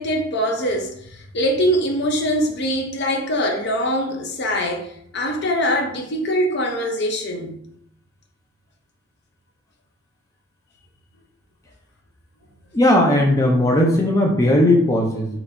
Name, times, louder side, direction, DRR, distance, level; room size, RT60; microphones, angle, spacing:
voice 1, 0.0-7.6, equal, 55° left, 0.7 m, -23 dB
voice 2, 12.7-15.4, left 1 dB, 15° left, 0.5 m, -17 dB
4.2 x 2.9 x 2.6 m
head